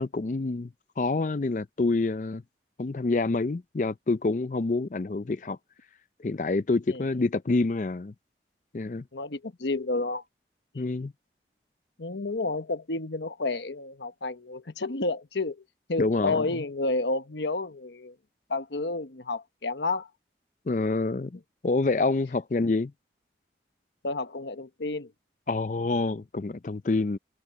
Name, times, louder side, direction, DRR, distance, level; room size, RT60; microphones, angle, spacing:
voice 1, 0.0-2.4 2.8-5.6 6.2-8.1 8.7-9.1 10.7-11.1 16.0-16.6 20.7-22.9 25.5-27.2, left 3 dB, 45° left, 0.5 m, -27 dB
voice 2, 9.1-10.2 10.7-10.9 12.0-15.6 15.9-18.1 18.5-20.1 24.0-25.1, left 3 dB, 90° left, 1.2 m, -30 dB
head